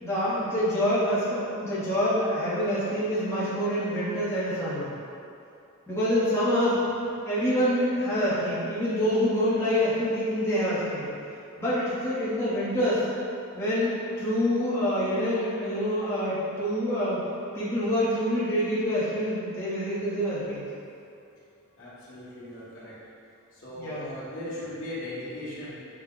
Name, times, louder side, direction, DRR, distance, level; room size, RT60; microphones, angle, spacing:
voice 1, 0.0-4.9 5.9-6.8 7.2-11.1 11.6-13.0 13.5-17.2 17.5-20.6 23.7-24.1, equal, 10° left, -11 dB, 0.8 m, -26 dB
voice 2, 21.8-23.0 23.5-25.9, left 1 dB, 60° left, -8 dB, 1.2 m, -38 dB
6.0 x 2.1 x 3.7 m, 2.7 s
head